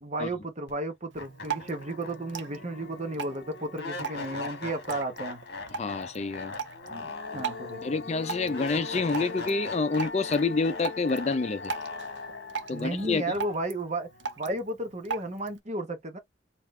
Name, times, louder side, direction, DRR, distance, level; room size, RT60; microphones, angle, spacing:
voice 1, 0.0-5.4 6.9-8.0 12.7-14.1 14.4-16.2, right 1 dB, 35° right, 1.1 m, -33 dB
sound 1, 0.7-0.8 1.2-14.2, left 3 dB, 55° left, 1.3 m, -39 dB
Drip, 1.1-15.6, right 6 dB, 65° right, 0.6 m, -40 dB
voice 2, 5.7-6.5 7.3-7.4 7.8-11.7 12.7-13.2, left 4 dB, 35° left, 0.4 m, -28 dB
3.8 x 2.9 x 3.2 m
head